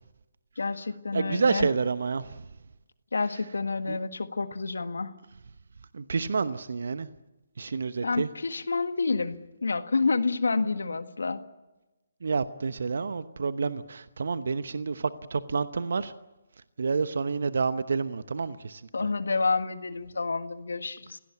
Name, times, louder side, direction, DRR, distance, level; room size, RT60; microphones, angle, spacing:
voice 1, 0.6-1.7 3.1-5.1 8.0-11.4 18.9-21.2, left 4 dB, 70° left, 10 dB, 1.7 m, -29 dB
voice 2, 1.1-2.4 3.9-4.0 5.9-7.1 7.6-8.3 12.2-16.1 16.8-18.8, right 4 dB, 65° right, 13 dB, 1.0 m, -29 dB
27.0 x 17.5 x 8.5 m, 1.0 s
figure-of-eight pair, 140°, 0 cm